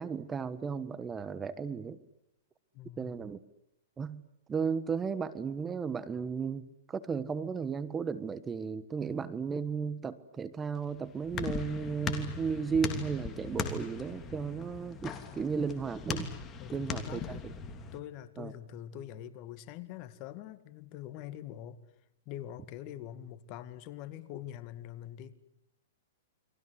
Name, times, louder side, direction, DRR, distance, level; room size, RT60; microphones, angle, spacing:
voice 1, 0.0-2.0 3.0-3.4 4.0-4.2 4.5-16.3 16.7-17.4 18.4-18.5, right 6 dB, 15° right, 15 dB, 1.4 m, -34 dB
voice 2, 2.7-3.2 16.6-17.4 17.9-21.8 22.3-25.3, left 12 dB, 40° left, 12 dB, 2.1 m, -44 dB
sound 1, 10.8-18.0, left 5 dB, 20° left, 2.9 m, -39 dB
29.5 x 23.0 x 8.1 m, 0.76 s
hypercardioid pair, 130°, 0 cm